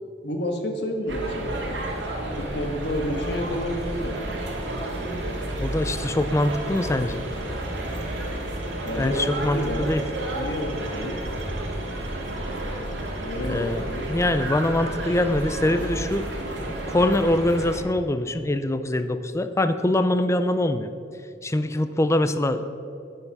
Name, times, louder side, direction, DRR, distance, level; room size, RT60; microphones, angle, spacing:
voice 1, 0.2-1.6 2.3-4.2 8.8-9.9 10.3-11.2 13.2-14.2, left 1 dB, 65° left, 4 dB, 1.5 m, -30 dB
sound 1, 1.1-17.8, right 1 dB, 80° right, 2.0 m, -31 dB
voice 2, 5.6-7.2 8.9-10.0 13.5-16.3 16.9-20.9 21.4-22.7, left 1 dB, 15° left, 10 dB, 0.4 m, -23 dB
9.7 x 9.2 x 5.9 m, 2.6 s
head